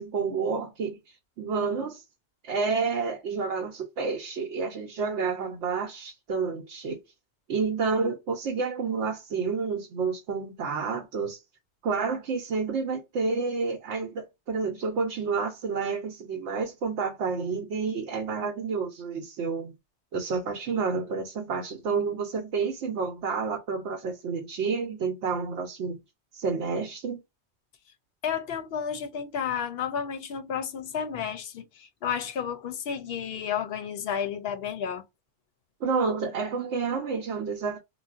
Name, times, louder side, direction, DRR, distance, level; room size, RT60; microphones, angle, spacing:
voice 1, 0.0-2.0 2.4-7.0 7.5-11.4 11.8-19.7 20.1-26.0 26.3-27.2 35.8-37.8, right 5 dB, 80° right, 0.9 m, -29 dB
voice 2, 28.2-35.0, left 7 dB, 65° left, 0.7 m, -32 dB
3.9 x 2.1 x 2.4 m
omnidirectional pair, 1.2 m